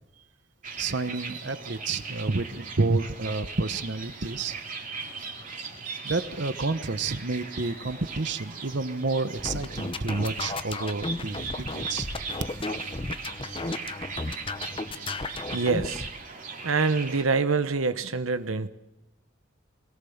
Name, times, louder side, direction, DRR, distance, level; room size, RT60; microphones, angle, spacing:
sound 1, 0.6-17.2, right 4 dB, 40° right, 2.9 m, -39 dB
voice 1, 0.8-4.5 6.0-11.5 11.7-12.1, right 3 dB, 60° right, 11 dB, 1.0 m, -29 dB
sound 2, 9.4-16.1, left 2 dB, 25° left, 0.8 m, -34 dB
voice 2, 15.5-16.0 16.6-18.7, right 4 dB, 85° right, 11 dB, 1.0 m, -25 dB
22.5 x 18.0 x 7.2 m, 0.96 s
head